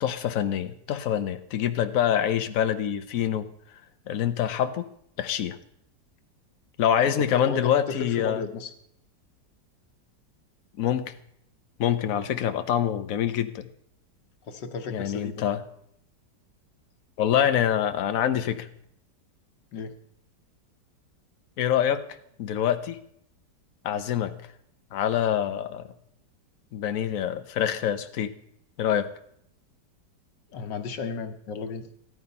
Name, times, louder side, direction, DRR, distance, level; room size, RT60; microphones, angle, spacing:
voice 1, 0.0-3.5 4.1-4.9 5.2-5.6 6.8-8.4 10.8-11.1 11.8-13.7 14.9-15.6 17.2-18.7 21.6-22.0 22.4-23.0 23.8-24.3 24.9-25.9 26.7-28.3 28.8-29.1, left 9 dB, 55° left, 9 dB, 1.2 m, -25 dB
voice 2, 7.3-8.7 14.4-15.5 19.7-20.0 30.5-31.9, left 5 dB, 85° left, 6 dB, 1.8 m, -34 dB
14.0 x 11.5 x 5.4 m, 0.73 s
omnidirectional pair, 1.9 m